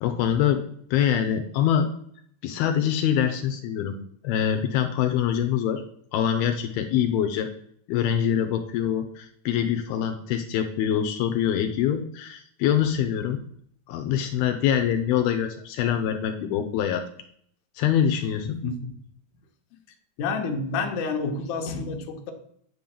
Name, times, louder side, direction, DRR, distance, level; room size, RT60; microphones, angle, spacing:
voice 1, 0.0-0.6 0.9-1.9 2.4-4.0 4.2-5.8 6.1-7.5 7.9-13.4 13.9-17.0 17.8-18.6, left 9 dB, 80° left, 6 dB, 2.5 m, -24 dB
voice 2, 20.2-22.3, left 4 dB, 65° left, 5 dB, 2.1 m, -29 dB
9.9 x 3.9 x 7.2 m, 0.65 s
omnidirectional pair, 4.6 m